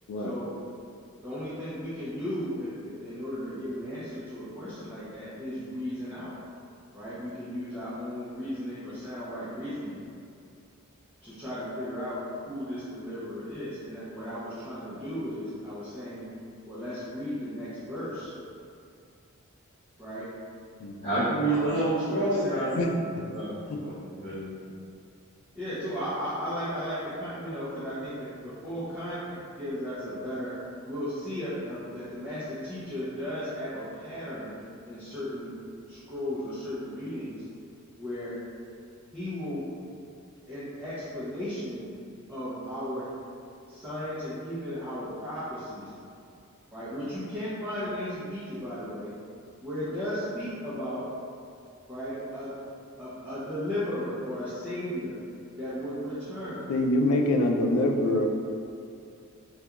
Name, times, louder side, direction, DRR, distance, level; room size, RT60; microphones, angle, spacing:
voice 1, 0.2-0.5 1.2-6.4 6.9-10.0 11.2-12.2 12.5-16.3 16.7-18.3 20.0-20.3 21.3-21.7 22.1-22.7 25.5-30.5 30.8-34.5 34.9-35.5 35.9-37.4 38.0-38.4 39.1-39.7 40.5-41.8 42.3-43.1 43.7-45.9 46.7-49.1 49.6-51.1 51.9-52.5 53.0-55.1 55.5-56.6, equal, 5° right, -14 dB, 0.5 m, -35 dB
voice 2, 21.0-22.9 23.3-23.5 23.8-24.5, right 1 dB, 35° left, -16 dB, 0.7 m, -28 dB
voice 3, 56.7-58.3, left 1 dB, 85° left, 3 dB, 0.3 m, -25 dB
2.3 x 2.2 x 2.8 m, 2.4 s
head